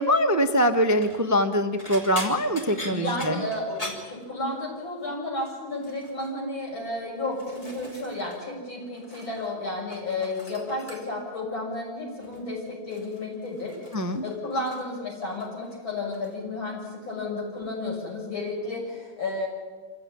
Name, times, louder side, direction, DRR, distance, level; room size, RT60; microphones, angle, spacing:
voice 1, 0.0-3.4 13.9-14.2, equal, 15° right, 7 dB, 0.6 m, -23 dB
sound 1, 0.8-1.2 1.8-4.8 5.1-5.4 5.8-6.3 7.0-8.4 8.7-9.5 9.8-11.3 12.2-12.5 12.9-15.0 15.2-15.8 16.1-16.3 17.6-17.7, equal, 20° left, 2.9 m, -41 dB
voice 2, 2.9-19.5, left 2 dB, 85° left, -2 dB, 7.5 m, -32 dB
26.0 x 15.5 x 9.8 m, 1.4 s
omnidirectional pair, 2.1 m